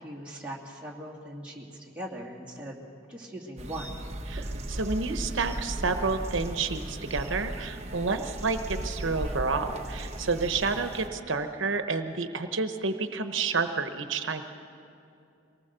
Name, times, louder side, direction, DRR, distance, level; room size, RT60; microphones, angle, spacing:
voice 1, 0.0-2.8 3.1-3.9, right 1 dB, 5° right, -4 dB, 2.6 m, -40 dB
sound 1, 3.6-11.1, right 1 dB, 35° right, 1.1 m, -36 dB
voice 2, 4.3-14.4, right 4 dB, 75° right, 8 dB, 1.0 m, -30 dB
23.5 x 19.0 x 6.8 m, 2.7 s
head